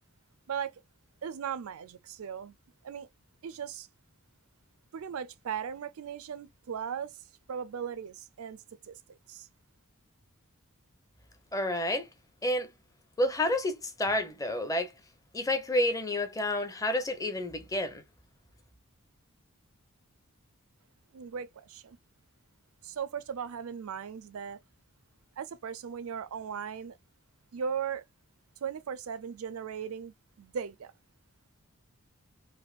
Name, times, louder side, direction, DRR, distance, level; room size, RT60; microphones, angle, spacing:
voice 1, 1.2-2.5 2.8-3.1 3.4-3.9 4.9-9.5 21.1-22.0 22.8-24.6 25.4-27.0 27.5-28.0 28.6-30.9, right 7 dB, 70° right, 0.4 m, -38 dB
voice 2, 11.5-12.1 12.4-12.7 13.2-14.9 15.3-18.0, left 1 dB, 15° left, 0.7 m, -29 dB
3.4 x 2.6 x 2.4 m
head